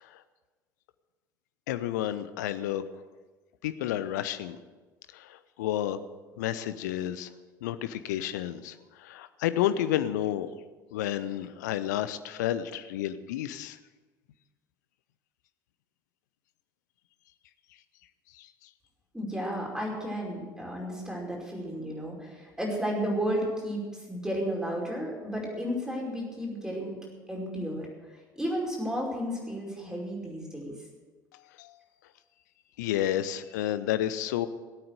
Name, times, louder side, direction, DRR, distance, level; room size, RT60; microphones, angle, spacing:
voice 1, 1.7-2.8 3.6-4.6 5.1-6.0 6.4-7.3 7.6-10.5 10.9-13.8 18.4-18.5 31.6-31.7 32.8-34.5, left 12 dB, 65° left, 13 dB, 0.8 m, -30 dB
voice 2, 19.1-27.0 27.3-27.9 28.3-30.7, equal, 5° right, -2 dB, 5.1 m, -33 dB
18.5 x 8.8 x 6.6 m, 1.3 s
figure-of-eight pair, 60°, 10 cm